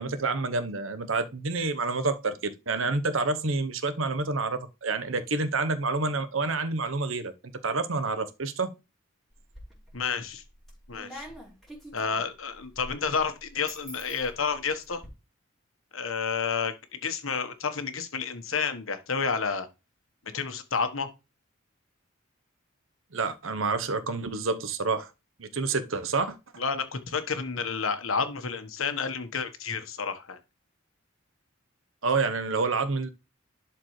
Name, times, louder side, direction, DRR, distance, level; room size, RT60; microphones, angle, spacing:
voice 1, 0.0-7.3 7.6-8.7 23.1-25.1 25.4-26.4 32.0-33.1, right 3 dB, 75° right, 0.9 m, -28 dB
sound 1, 9.3-10.0 10.4-15.1, equal, ahead, 3.2 m, -46 dB
voice 2, 9.9-10.4 10.9-11.3 11.9-15.0 15.9-19.7 20.3-21.1 26.6-30.4, left 5 dB, 80° left, 1.3 m, -30 dB
11.5 x 4.5 x 3.2 m
head